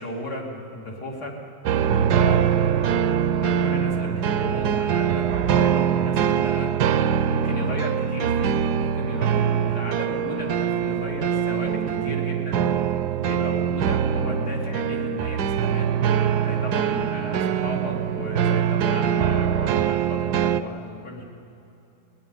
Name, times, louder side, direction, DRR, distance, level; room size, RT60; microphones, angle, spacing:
voice 1, 0.0-1.3 1.7-3.2 3.4-6.7 7.3-12.7 13.1-16.0 16.4-21.2, left 1 dB, 80° left, -2 dB, 3.5 m, -34 dB
sound 1, 1.7-20.6, right 8 dB, 80° right, 1.2 m, -23 dB
24.0 x 19.5 x 5.5 m, 3.0 s
omnidirectional pair, 1.8 m